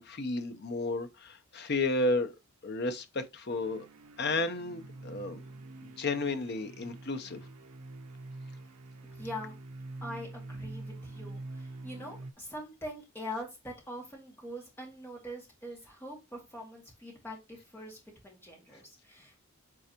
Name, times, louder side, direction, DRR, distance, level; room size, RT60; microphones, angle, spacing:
voice 1, 0.0-2.3 2.6-3.9 4.2-5.4 5.8-7.4, left 2 dB, 45° left, 0.7 m, -32 dB
sound 1, 3.5-12.3, right 2 dB, 85° right, 0.6 m, -45 dB
voice 2, 9.1-9.5 10.0-18.0 18.2-19.4, left 1 dB, 10° left, 2.1 m, -43 dB
8.4 x 3.9 x 2.9 m
head